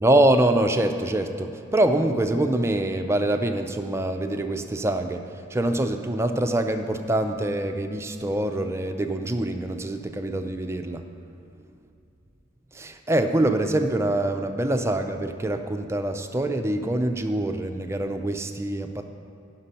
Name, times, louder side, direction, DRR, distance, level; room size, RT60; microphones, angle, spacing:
voice 1, 0.0-5.2 5.5-11.0 12.7-19.0, right 1 dB, 15° right, 6 dB, 0.4 m, -24 dB
10.0 x 5.9 x 5.6 m, 2.7 s
head